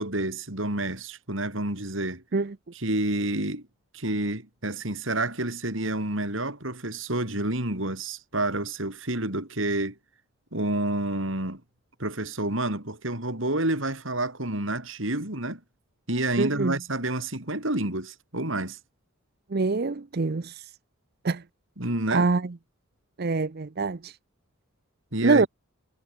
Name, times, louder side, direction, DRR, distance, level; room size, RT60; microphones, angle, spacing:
voice 1, 0.0-2.2 2.7-3.7 3.9-10.0 10.5-11.6 12.0-15.6 16.1-18.8 21.8-22.3 25.1-25.5, right 1 dB, 65° right, 4.8 m, -29 dB
voice 2, 16.4-16.8 19.5-20.7 21.2-21.4 22.1-22.4 23.2-24.2 25.2-25.5, right 3 dB, 45° right, 0.6 m, -25 dB
head